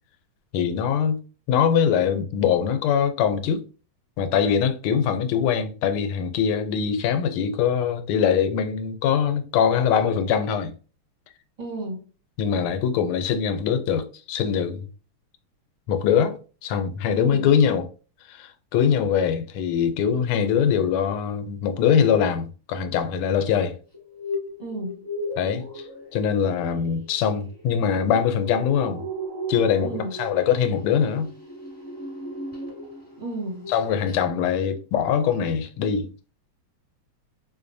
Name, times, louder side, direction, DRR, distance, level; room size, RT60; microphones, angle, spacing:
voice 1, 0.5-1.2 1.5-3.6 4.2-10.7 12.4-14.9 15.9-16.4 16.6-17.9 18.3-23.8 25.4-25.8 26.1-29.0 29.5-31.3 33.7-36.3, left 7 dB, 85° left, 1.5 m, -22 dB
voice 2, 11.6-12.1 17.1-17.5 24.6-25.0 29.8-30.1 33.2-33.7, right 2 dB, 25° right, 1.1 m, -32 dB
sound 1, 23.9-33.2 33.5-33.8 34.1-34.2, equal, 10° left, 1.6 m, -36 dB
4.4 x 2.6 x 2.6 m
omnidirectional pair, 2.3 m